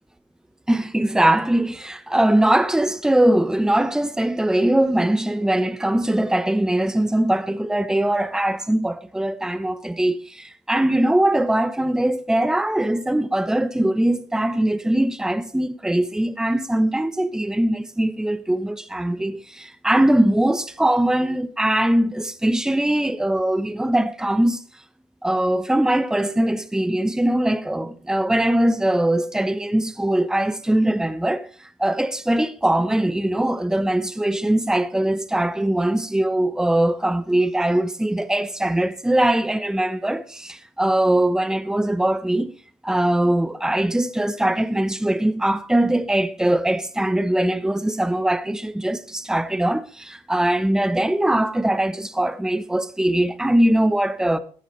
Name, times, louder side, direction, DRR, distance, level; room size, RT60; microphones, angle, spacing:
voice 1, 0.7-24.6 25.2-42.5 42.8-54.4, right 1 dB, 5° right, 0.9 m, -21 dB
14.5 x 9.6 x 3.2 m
supercardioid pair, 75°, 12 cm